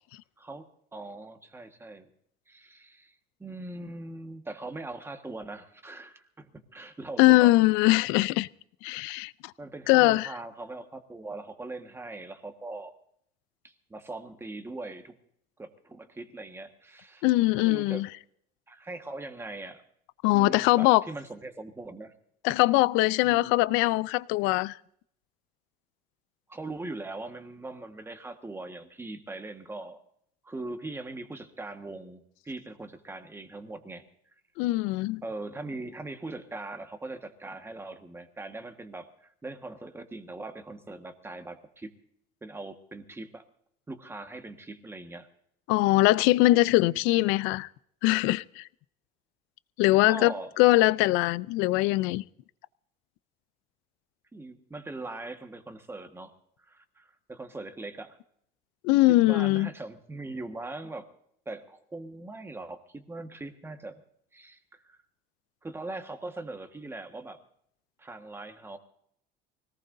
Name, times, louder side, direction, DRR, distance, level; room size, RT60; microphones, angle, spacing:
voice 1, 0.9-2.1 2.5-3.1 3.4-7.5 9.6-12.9 13.6-15.1 15.6-18.1 18.7-19.8 20.2-22.1 23.2-23.6 26.5-30.0 30.4-34.0 35.2-41.9 42.4-43.4 43.9-45.3 46.9-47.0 50.0-50.5 54.3-56.3 56.6-58.2 59.3-61.1 61.4-63.9 64.3-65.0 65.6-67.4 68.0-68.8, right 2 dB, 10° right, 1.5 m, -41 dB
voice 2, 7.2-8.5 8.8-9.5 9.9-10.3 17.2-18.1 20.2-21.0 22.4-24.8 34.6-35.2 45.7-47.7 48.0-48.7 49.8-52.2 58.8-59.7, left 19 dB, 80° left, 0.5 m, -22 dB
24.5 x 18.5 x 2.7 m
cardioid pair, 140°, 20 cm